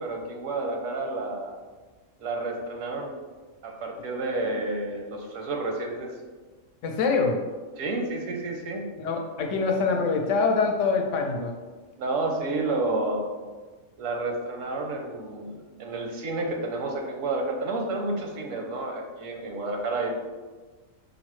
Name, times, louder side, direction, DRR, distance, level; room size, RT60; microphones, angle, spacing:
voice 1, 0.0-1.5 2.2-3.1 3.6-6.1 7.8-8.8 12.0-13.3 14.0-20.2, right 2 dB, 80° right, 2 dB, 1.0 m, -30 dB
voice 2, 6.8-7.4 9.0-11.6, left 4 dB, 75° left, 2 dB, 0.9 m, -24 dB
5.3 x 2.0 x 3.0 m, 1.3 s
omnidirectional pair, 1.3 m